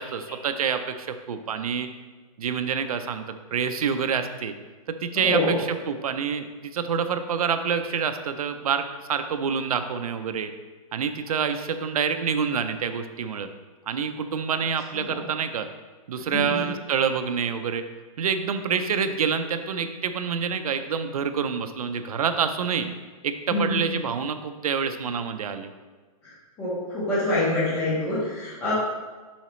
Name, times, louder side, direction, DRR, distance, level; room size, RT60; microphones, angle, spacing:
voice 1, 0.0-1.9 2.4-3.3 3.5-4.5 4.9-10.5 10.9-13.5 13.9-15.7 16.1-17.9 18.2-22.9 23.2-25.7, right 6 dB, 70° right, 8 dB, 0.6 m, -27 dB
voice 2, 5.1-5.6 14.9-15.2 16.3-16.7 23.5-23.8 26.2-26.3 26.6-28.7, left 1 dB, 15° left, -9 dB, 1.4 m, -26 dB
7.1 x 5.7 x 3.1 m, 1.4 s
hypercardioid pair, 175°, 19 cm